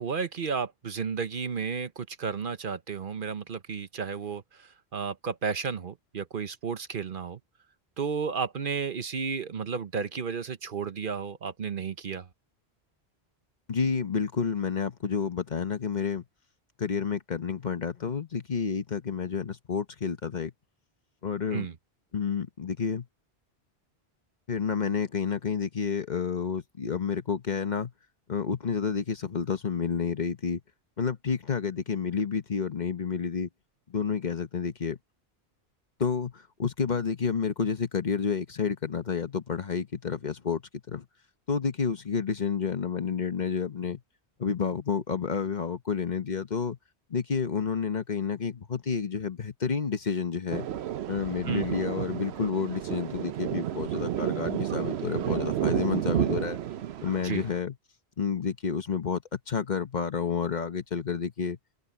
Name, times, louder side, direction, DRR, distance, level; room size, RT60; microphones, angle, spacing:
voice 1, 0.0-7.4 8.0-12.3 21.5-21.7 51.5-51.7 57.2-57.4, right 6 dB, 55° right, 1.0 m, -32 dB
voice 2, 13.7-16.2 16.8-20.5 21.2-21.7 22.1-23.1 24.5-27.9 28.3-30.6 31.0-33.5 33.9-35.0 36.0-40.6 40.9-41.0 41.5-44.0 44.4-46.8 47.1-50.7 51.1-56.6 57.0-57.7 58.2-61.6, left 6 dB, 45° left, 1.0 m, -30 dB
Thunder, 50.5-57.6, right 11 dB, 80° right, 0.9 m, -31 dB
omnidirectional pair, 1.1 m